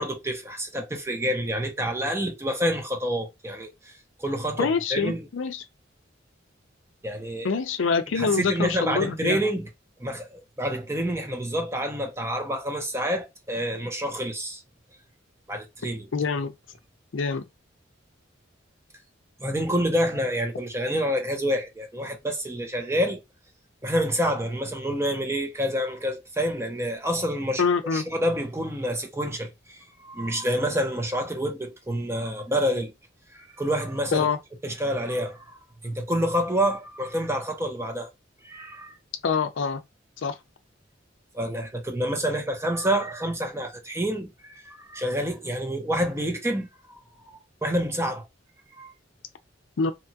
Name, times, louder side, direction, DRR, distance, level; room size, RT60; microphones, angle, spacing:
voice 1, 0.0-3.9 4.2-5.3 7.0-7.6 8.1-9.7 10.0-14.6 15.5-16.1 19.4-23.2 23.8-27.6 27.9-32.9 33.3-34.3 34.6-35.6 35.8-38.1 38.4-39.0 41.3-47.0 47.3-48.2 48.8-48.9, equal, 15° right, 0.6 m, -28 dB
voice 2, 4.6-5.6 7.4-9.4 16.1-16.5 17.1-17.4 27.6-28.0 34.1-34.4 39.2-39.8 40.2-40.4 49.8-49.9, left 5 dB, 90° left, 0.5 m, -25 dB
2.9 x 2.3 x 2.7 m
head